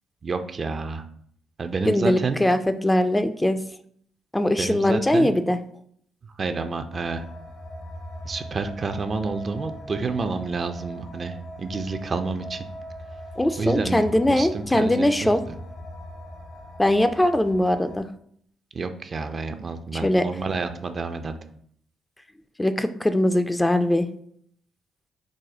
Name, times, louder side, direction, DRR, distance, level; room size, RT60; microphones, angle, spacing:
voice 1, 0.2-1.0 1.6-2.4 4.6-5.4 6.4-7.2 8.3-12.7 13.6-15.4 18.7-21.4, right 4 dB, 45° right, 8 dB, 0.4 m, -29 dB
voice 2, 1.9-3.6 4.3-5.6 13.4-15.4 16.8-18.1 19.9-20.3 22.6-24.1, left 1 dB, 15° left, 9 dB, 0.4 m, -21 dB
sound 1, 6.9-18.0, equal, 60° left, 1.0 m, -40 dB
4.9 x 2.1 x 3.8 m, 0.64 s
supercardioid pair, 55°, 0 cm